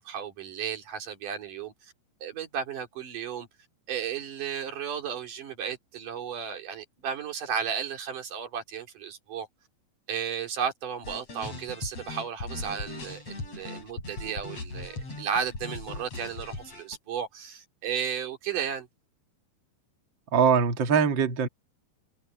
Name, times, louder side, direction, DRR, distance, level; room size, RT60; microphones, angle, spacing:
voice 1, 0.0-1.9 2.2-3.5 3.9-9.5 10.1-18.9, right 7 dB, 50° right, 4.5 m, -34 dB
sound 1, 11.0-17.0, left 2 dB, 35° left, 7.9 m, -39 dB
voice 2, 20.3-21.5, right 6 dB, 65° right, 1.1 m, -22 dB
omnidirectional pair, 5.2 m